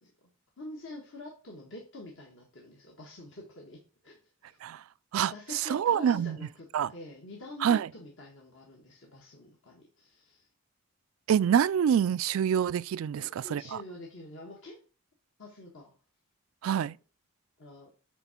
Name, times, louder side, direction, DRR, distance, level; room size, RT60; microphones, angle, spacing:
voice 1, 0.0-4.6 5.1-10.5 13.1-14.8 15.4-15.9 17.6-17.9, left 2 dB, 60° left, 1.5 m, -47 dB
voice 2, 5.7-6.4 6.7-6.9 7.6-7.9 11.3-13.2 13.5-13.6 16.6-16.9, right 8 dB, 75° right, 0.3 m, -25 dB
8.1 x 3.7 x 5.7 m
head